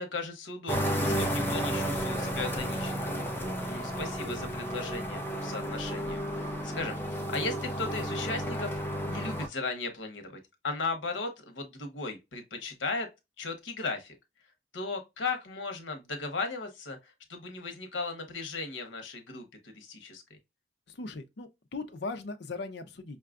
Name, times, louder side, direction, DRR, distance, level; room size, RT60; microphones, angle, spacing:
voice 1, 0.0-13.1 13.4-14.2 14.7-20.4, left 3 dB, 80° left, 0.9 m, -37 dB
sound 1, 0.7-9.5, equal, 10° left, 0.6 m, -32 dB
voice 2, 20.9-23.2, left 3 dB, 65° left, 0.6 m, -39 dB
5.5 x 2.3 x 2.4 m
head